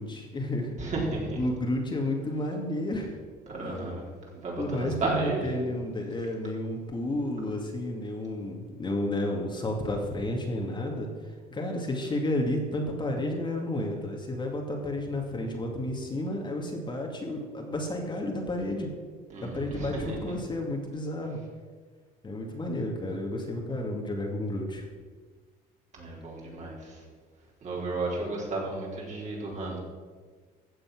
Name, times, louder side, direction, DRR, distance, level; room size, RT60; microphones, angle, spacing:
voice 1, 0.0-0.8 1.3-3.2 3.6-4.0 4.6-18.9 19.4-21.4 22.2-24.9, left 1 dB, 25° left, 1 dB, 2.2 m, -31 dB
voice 2, 0.8-1.4 3.5-4.0 4.4-5.7 19.3-20.2 25.9-27.0 27.6-29.8, right 2 dB, 45° right, -3 dB, 4.3 m, -33 dB
15.0 x 7.5 x 6.1 m, 1.5 s
cardioid pair, 110°, 17 cm